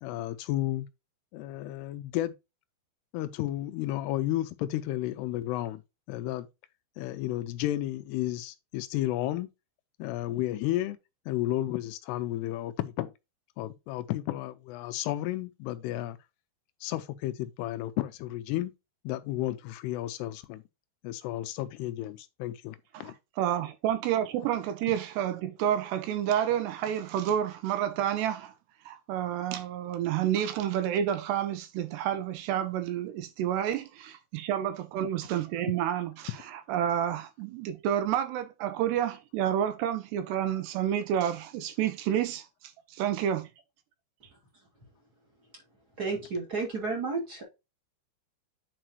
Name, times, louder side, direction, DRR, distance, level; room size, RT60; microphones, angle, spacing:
voice 1, 0.0-0.9 1.3-2.3 3.1-5.8 6.1-6.5 7.0-9.5 10.0-11.0 11.3-13.1 13.6-16.2 16.8-18.7 19.0-20.6 21.0-23.1, left 15 dB, 85° left, 2.5 m, -32 dB
voice 2, 22.9-28.5 28.9-42.5 42.9-43.5, right 10 dB, 80° right, 2.7 m, -29 dB
voice 3, 46.0-47.4, right 4 dB, 25° right, 2.3 m, -32 dB
8.9 x 4.9 x 3.0 m
omnidirectional pair, 5.2 m